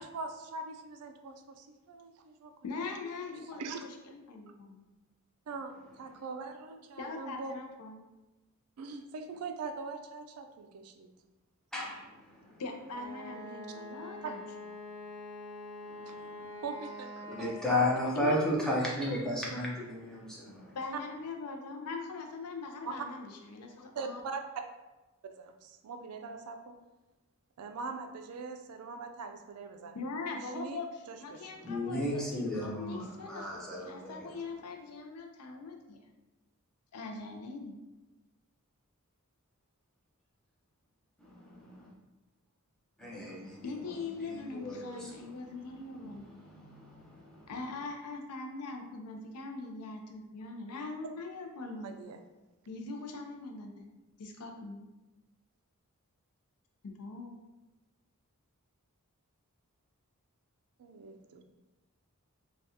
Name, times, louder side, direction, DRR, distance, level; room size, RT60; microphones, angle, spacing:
voice 1, 0.0-2.5 3.1-3.2 3.6-3.8 5.5-7.5 8.8-11.1 14.2-14.3 16.1-16.2 16.6-17.9 23.9-24.4 25.4-26.7 27.6-30.0 30.3-30.8 31.1-31.5 51.8-52.2 60.8-61.4, right 4 dB, 80° right, 6 dB, 0.3 m, -42 dB
voice 2, 2.6-4.8 7.0-8.0 12.6-14.4 18.1-18.6 20.7-24.2 29.9-36.0 36.9-37.7 43.6-46.3 47.5-52.0 52.7-53.8 54.2-54.9 56.8-57.3, left 3 dB, 90° left, 3 dB, 0.5 m, -41 dB
voice 3, 11.7-12.6 15.9-16.5 17.2-20.8 31.6-34.3 41.2-41.9 43.0-43.7 44.2-45.3 46.0-47.5, left 1 dB, 5° left, -6 dB, 0.6 m, -35 dB
Wind instrument woodwind instrument, 12.9-18.6, left 1 dB, 30° right, 0.8 m, -45 dB
3.4 x 2.3 x 2.7 m, 1.1 s
head